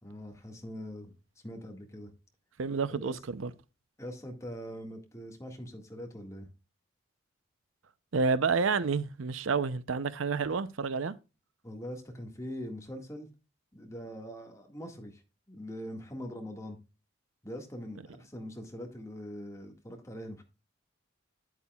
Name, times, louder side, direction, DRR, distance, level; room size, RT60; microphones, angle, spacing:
voice 1, 0.0-1.1 1.4-2.1 2.9-3.2 4.0-6.5 11.6-13.3 13.7-15.2 15.5-16.8 17.4-20.4, equal, 15° left, 1.8 m, -42 dB
voice 2, 2.6-3.5 8.1-11.2, right 4 dB, 85° right, 0.6 m, -29 dB
10.0 x 8.3 x 2.3 m
head